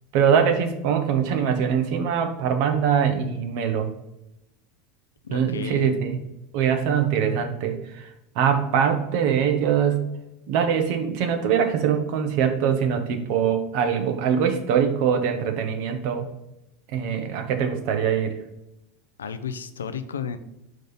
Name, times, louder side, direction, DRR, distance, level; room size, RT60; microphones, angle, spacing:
voice 1, 0.1-3.9 5.3-6.2 6.5-8.1 8.3-10.0 10.5-16.3 16.9-18.3, right 7 dB, 60° right, 6 dB, 1.0 m, -23 dB
voice 2, 5.2-6.0 19.2-20.4, left 6 dB, 80° left, 11 dB, 0.5 m, -33 dB
5.2 x 3.9 x 5.7 m, 0.89 s
figure-of-eight pair, 80°, 0 cm